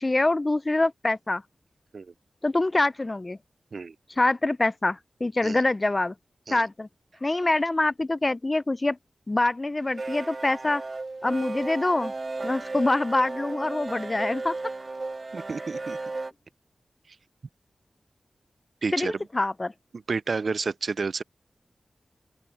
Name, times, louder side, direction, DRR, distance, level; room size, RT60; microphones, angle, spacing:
voice 1, 0.0-1.4 2.4-3.4 4.2-6.1 6.5-6.9 7.2-9.0 9.3-10.8 11.2-12.1 12.4-14.6 18.9-19.7, left 2 dB, 25° left, 0.4 m, -25 dB
sound 1, 9.8-16.3, right 3 dB, 40° right, 1.9 m, -34 dB
voice 2, 15.3-16.0 18.8-19.1 20.1-21.2, right 4 dB, 60° right, 0.3 m, -30 dB
open air
wide cardioid pair, 100°, 0 cm